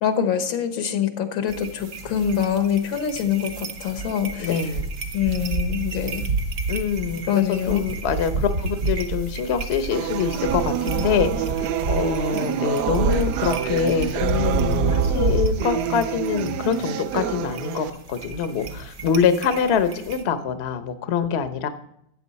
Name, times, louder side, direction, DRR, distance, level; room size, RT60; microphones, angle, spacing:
voice 1, 0.0-4.5 5.1-6.2 7.3-7.9, left 8 dB, 85° left, 8 dB, 1.9 m, -24 dB
sound 1, 1.5-20.2, right 3 dB, 55° right, 1.4 m, -29 dB
voice 2, 4.4-4.9 6.7-11.5 11.9-21.7, left 7 dB, 55° left, 10 dB, 0.7 m, -24 dB
sound 2, 9.9-17.9, right 11 dB, 75° right, 1.0 m, -27 dB
13.5 x 8.5 x 4.1 m, 0.75 s
omnidirectional pair, 2.1 m